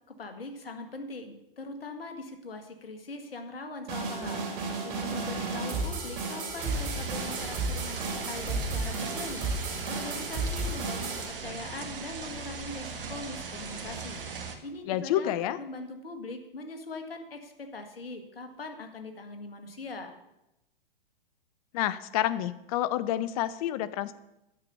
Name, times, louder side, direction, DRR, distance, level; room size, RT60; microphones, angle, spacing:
voice 1, 0.1-4.5 4.8-20.2, left 3 dB, 80° left, 6 dB, 1.8 m, -41 dB
sound 1, 3.9-11.3, right 3 dB, 50° right, 3.3 m, -33 dB
sound 2, 6.6-14.5, right 5 dB, 65° right, 1.6 m, -39 dB
voice 2, 14.9-15.6 21.7-24.2, left 12 dB, 40° left, 15 dB, 0.7 m, -29 dB
9.5 x 6.8 x 6.9 m, 0.90 s
hypercardioid pair, 120°, 29 cm